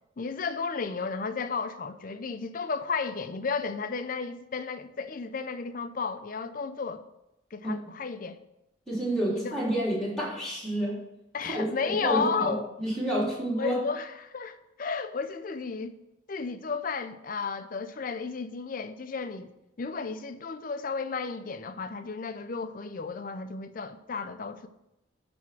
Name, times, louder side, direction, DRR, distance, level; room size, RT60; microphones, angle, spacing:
voice 1, 0.2-7.0 7.5-8.4 9.3-9.6 11.3-12.6 13.6-16.0 16.3-19.5 19.8-24.7, left 5 dB, 45° left, 0.5 m, -33 dB
voice 2, 8.9-11.0 11.5-11.6 12.0-13.8, right 1 dB, ahead, 3.0 m, -29 dB
9.5 x 3.5 x 5.9 m
head